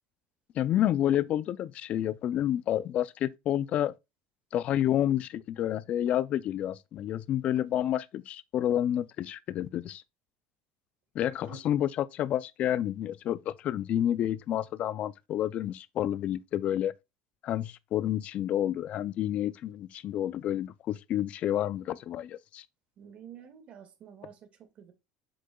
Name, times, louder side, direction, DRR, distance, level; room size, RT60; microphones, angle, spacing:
voice 1, 0.5-3.9 4.5-10.0 11.2-16.9 17.4-22.6, left 11 dB, 45° left, 0.4 m, -29 dB
voice 2, 23.0-24.9, right 9 dB, 45° right, 1.8 m, -49 dB
7.8 x 6.4 x 2.3 m
supercardioid pair, 125°, 3 cm